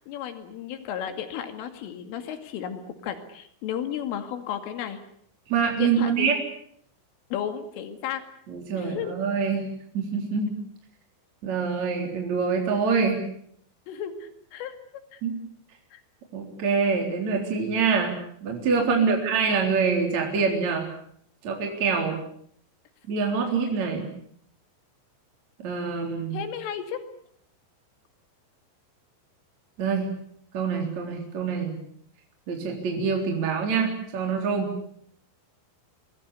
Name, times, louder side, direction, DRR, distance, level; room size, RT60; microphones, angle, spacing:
voice 1, 0.0-5.0 5.8-6.4 7.3-8.2 8.8-9.1 13.9-14.8 15.1-15.2 15.9-16.0 19.0-19.2 26.3-27.1, left 9 dB, 90° left, 7 dB, 4.9 m, -34 dB
voice 2, 5.5-6.4 8.5-10.6 11.4-13.3 15.2-15.4 16.3-20.9 21.4-22.2 23.1-24.1 25.6-26.4 29.8-30.1 30.5-31.7 32.5-34.8, right 5 dB, 40° right, 1 dB, 4.7 m, -25 dB
27.0 x 20.5 x 8.4 m, 0.66 s
omnidirectional pair, 5.6 m